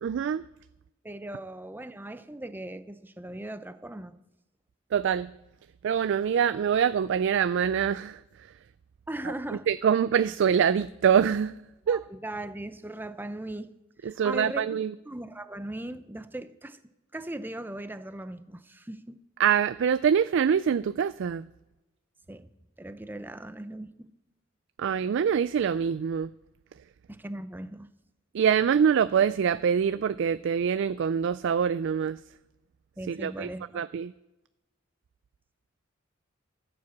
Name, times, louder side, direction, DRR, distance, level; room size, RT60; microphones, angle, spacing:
voice 1, 0.0-0.4 4.9-5.3 5.8-8.2 9.7-11.5 11.9-12.0 14.0-14.9 19.4-21.5 24.8-26.3 28.3-32.2 33.1-33.5 33.7-34.1, right 7 dB, 60° right, 14 dB, 0.3 m, -24 dB
voice 2, 1.0-4.2 9.1-9.7 11.9-13.7 14.0-14.7 15.1-16.8 17.1-19.2 22.3-22.5 22.8-24.1 27.1-27.9 33.0-33.9, right 1 dB, 10° right, 11 dB, 0.6 m, -38 dB
14.0 x 7.7 x 7.1 m, 1.0 s
head